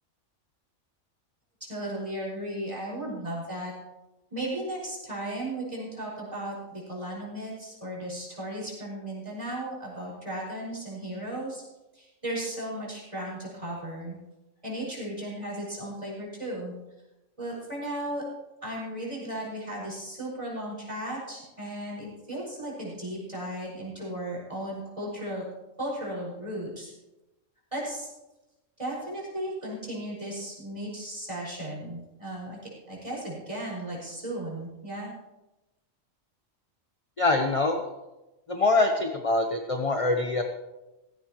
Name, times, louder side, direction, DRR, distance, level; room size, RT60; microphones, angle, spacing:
voice 1, 1.6-3.7 4.3-11.6 11.9-14.2 14.6-16.7 17.4-18.2 18.6-25.4 25.8-26.9 27.7-28.1 28.8-32.6 32.9-35.1, right 1 dB, 25° right, -5 dB, 5.9 m, -35 dB
voice 2, 37.2-37.8 38.5-40.4, left 2 dB, 30° left, 4 dB, 0.9 m, -24 dB
16.5 x 16.0 x 3.1 m, 1.0 s
omnidirectional pair, 1.4 m